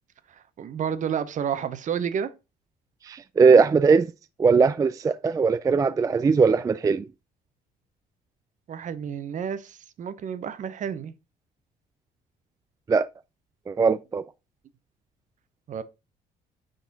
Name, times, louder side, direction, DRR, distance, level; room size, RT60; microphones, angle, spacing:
voice 1, 0.6-2.3 8.7-11.1 15.7-15.8, right 8 dB, 50° right, 0.8 m, -30 dB
voice 2, 3.1-4.1 4.4-7.0 12.9-13.1 13.7-14.2, right 5 dB, 20° right, 0.3 m, -20 dB
8.4 x 4.0 x 3.9 m
cardioid pair, 110°, 17 cm